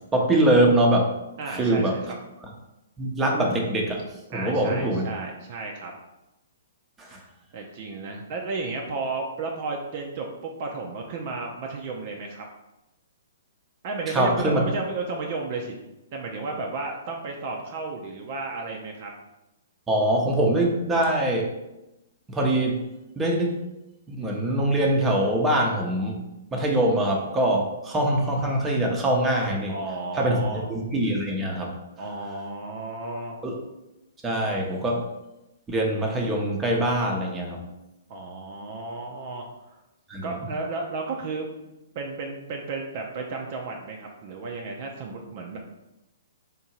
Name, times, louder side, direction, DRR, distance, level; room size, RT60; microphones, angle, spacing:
voice 1, 0.1-1.1 1.5-2.0 3.0-4.0 4.3-5.1 7.0-7.2 14.1-14.6 19.9-21.5 22.3-22.8 23.2-23.6 24.1-26.2 26.5-29.7 30.1-31.7 33.4-33.5 34.2-35.1 35.7-37.6 40.1-40.4, right 1 dB, 15° right, -1 dB, 0.8 m, -23 dB
voice 2, 1.4-2.0 4.3-5.9 7.5-12.4 13.8-15.7 16.1-19.1 29.7-30.7 32.0-33.4 38.1-39.7 40.2-41.5 41.9-45.6, right 3 dB, 45° right, 1 dB, 0.6 m, -33 dB
3.6 x 2.7 x 4.4 m, 0.96 s
figure-of-eight pair, 120°, 0 cm